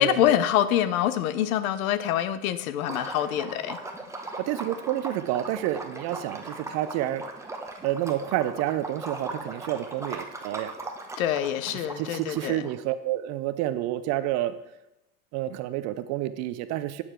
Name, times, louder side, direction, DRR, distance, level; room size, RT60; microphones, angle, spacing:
voice 1, 0.0-3.8 11.2-12.6, left 11 dB, 65° left, 14 dB, 0.7 m, -25 dB
Liquid, 2.8-12.7, right 2 dB, 5° right, 0.8 m, -39 dB
voice 2, 4.5-7.2 7.8-10.7 11.7-14.6 15.3-17.0, right 13 dB, 40° right, 13 dB, 0.5 m, -29 dB
8.6 x 6.6 x 4.4 m, 0.91 s
hypercardioid pair, 105°, 45 cm